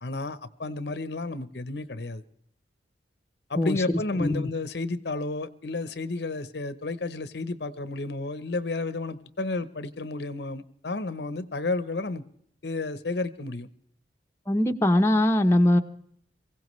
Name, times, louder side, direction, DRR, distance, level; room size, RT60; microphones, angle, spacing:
voice 1, 0.0-2.2 3.5-12.2 12.6-13.7, left 3 dB, 65° left, 14 dB, 0.8 m, -32 dB
voice 2, 14.5-15.8, left 1 dB, 15° left, 4 dB, 0.8 m, -21 dB
23.5 x 16.0 x 3.2 m, 0.67 s
head